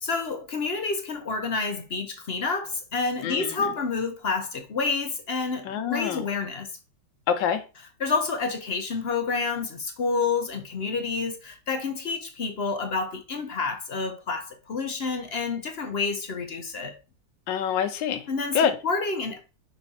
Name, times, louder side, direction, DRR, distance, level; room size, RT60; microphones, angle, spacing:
voice 1, 0.0-6.7 8.0-16.9 18.3-19.4, left 4 dB, 50° left, 0.7 m, -29 dB
voice 2, 3.2-3.7 5.6-6.2 7.3-7.6 17.5-18.3 18.5-18.8, left 8 dB, 75° left, 1.5 m, -26 dB
5.6 x 4.2 x 4.2 m
omnidirectional pair, 2.0 m